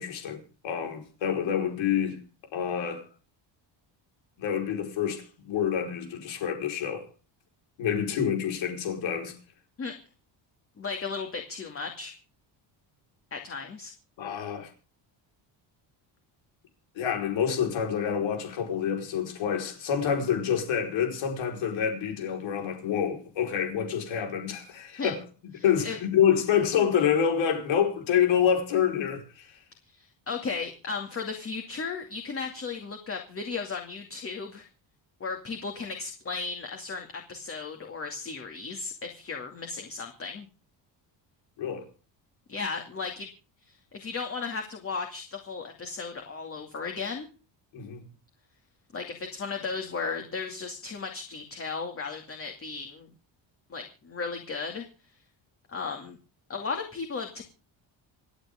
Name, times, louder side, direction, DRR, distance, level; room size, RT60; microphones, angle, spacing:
voice 1, 0.0-2.2 2.5-3.1 4.4-7.1 7.8-9.3 14.2-14.7 16.9-25.2 25.6-29.5 41.6-41.9 47.7-48.0, left 8 dB, 80° left, 4.8 m, -27 dB
voice 2, 10.8-12.1 13.3-13.9 25.0-25.1 25.8-26.0 29.9-34.7 35.2-40.5 42.5-43.3 43.7-47.3 48.9-53.1 53.7-54.9 55.7-56.2 56.5-57.4, left 4 dB, 30° left, 2.5 m, -35 dB
27.5 x 9.3 x 3.7 m
cardioid pair, 150°, 46 cm